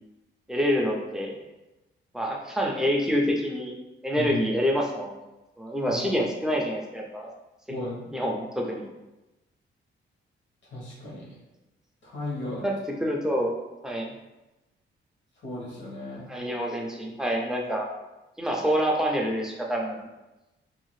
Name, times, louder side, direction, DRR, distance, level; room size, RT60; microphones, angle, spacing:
voice 1, 0.5-1.4 2.1-3.7 4.0-5.1 5.6-7.3 8.1-8.9 12.4-14.1 16.3-17.9 18.4-20.1, equal, 5° right, 0 dB, 0.3 m, -27 dB
voice 2, 7.7-8.1 10.7-11.3 12.0-12.7 15.4-16.2, left 1 dB, 65° left, -4 dB, 1.2 m, -35 dB
2.7 x 2.4 x 3.1 m, 1.0 s
wide cardioid pair, 155°, 21 cm